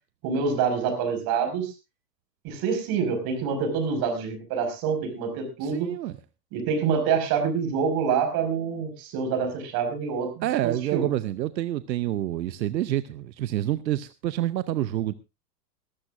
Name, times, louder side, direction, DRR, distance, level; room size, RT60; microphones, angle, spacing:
voice 1, 0.2-1.7 2.4-5.9 6.5-11.1, right 6 dB, 45° right, 5.4 m, -26 dB
voice 2, 5.6-6.1 10.4-15.1, right 13 dB, 85° right, 0.8 m, -28 dB
21.0 x 13.0 x 2.5 m
hypercardioid pair, 110°, 50 cm